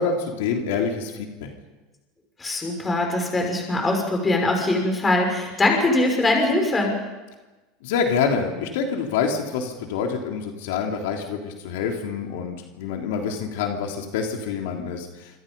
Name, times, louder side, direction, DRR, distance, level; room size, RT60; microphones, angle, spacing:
voice 1, 0.0-1.5 7.8-15.1, left 6 dB, 80° left, 2 dB, 3.3 m, -26 dB
voice 2, 2.4-7.0, left 2 dB, 15° left, 2 dB, 5.9 m, -22 dB
27.0 x 26.0 x 5.5 m, 1.2 s
supercardioid pair, 125°, 0 cm